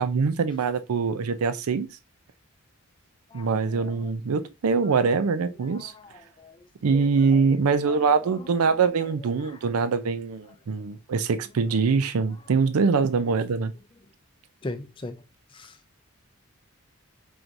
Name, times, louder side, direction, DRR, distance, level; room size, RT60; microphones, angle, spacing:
voice 1, 0.0-2.0 3.3-5.9 6.8-13.7, right 5 dB, 90° right, 0.5 m, -23 dB
voice 2, 3.3-3.9 6.4-6.6 7.9-8.0 14.6-15.2 15.6-15.7, left 2 dB, 25° left, 0.4 m, -37 dB
4.5 x 3.9 x 2.6 m
head